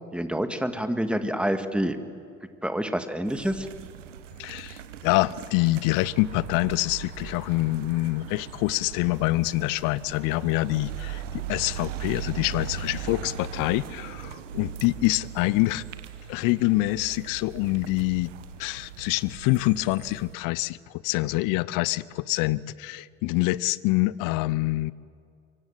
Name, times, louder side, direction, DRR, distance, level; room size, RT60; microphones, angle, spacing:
voice 1, 0.1-2.0 2.6-3.7, equal, 5° right, 8 dB, 2.1 m, -27 dB
sound 1, 3.2-20.3, right 9 dB, 75° right, 1.2 m, -39 dB
voice 2, 4.4-15.8 16.3-18.3 18.6-20.8 21.0-24.9, left 20 dB, 60° left, 21 dB, 0.8 m, -26 dB
25.5 x 24.0 x 7.7 m, 2.2 s
figure-of-eight pair, 55°, 37 cm